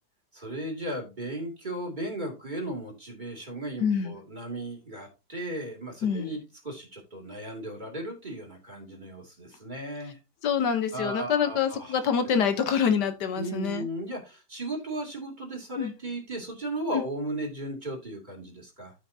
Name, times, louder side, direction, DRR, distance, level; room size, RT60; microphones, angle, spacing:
voice 1, 0.3-10.2 10.9-11.9 13.4-18.9, right 1 dB, 25° right, 2.8 m, -36 dB
voice 2, 3.8-4.1 6.0-6.3 10.4-13.9 15.8-15.9 16.9-17.0, left 7 dB, 80° left, 1.6 m, -26 dB
12.5 x 5.7 x 2.7 m
omnidirectional pair, 1.8 m